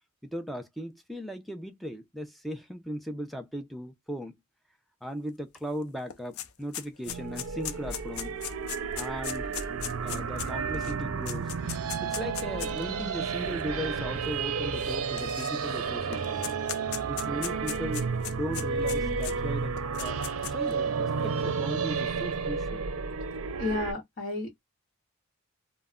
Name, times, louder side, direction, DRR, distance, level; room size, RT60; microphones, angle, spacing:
voice 1, 0.2-4.3 5.0-8.4 9.0-9.6 10.0-11.5 12.0-16.5 17.1-20.2 20.5-22.9, equal, ahead, 0.4 m, -37 dB
sound 1, 5.5-5.6 5.9-12.8 13.6-13.7 14.8-15.8 16.1-19.3 19.8-20.7, left 10 dB, 75° left, 0.4 m, -38 dB
sound 2, 7.1-23.9, right 5 dB, 80° right, 0.5 m, -32 dB
voice 2, 23.5-24.6, left 3 dB, 45° left, 1.0 m, -32 dB
2.2 x 2.1 x 3.5 m
head